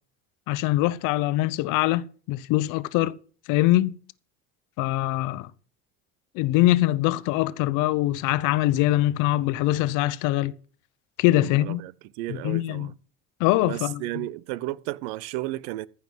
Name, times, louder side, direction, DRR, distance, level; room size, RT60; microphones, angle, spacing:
voice 1, 0.5-3.1 3.5-3.9 4.8-5.5 6.3-10.5 11.2-11.8 12.3-12.9 13.4-14.0, left 16 dB, 75° left, 0.9 m, -23 dB
voice 2, 11.3-12.9 13.6-15.9, right 17 dB, 85° right, 0.7 m, -33 dB
14.5 x 5.8 x 7.6 m
supercardioid pair, 95°, 31 cm